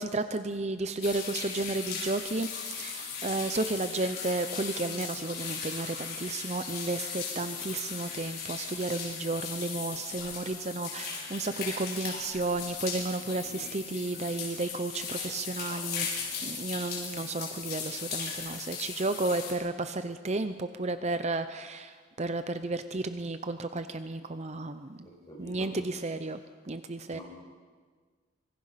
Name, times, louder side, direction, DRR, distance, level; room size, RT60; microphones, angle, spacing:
voice 1, 0.0-16.1 16.4-25.1 25.4-26.4 26.6-27.2, right 2 dB, 35° right, 10 dB, 0.6 m, -33 dB
sound 1, 1.0-19.5, left 6 dB, 50° left, 5.5 m, -38 dB
voice 2, 25.0-25.7 27.1-27.2, equal, 20° left, -2 dB, 6.6 m, -47 dB
25.0 x 23.0 x 5.8 m, 1.5 s
head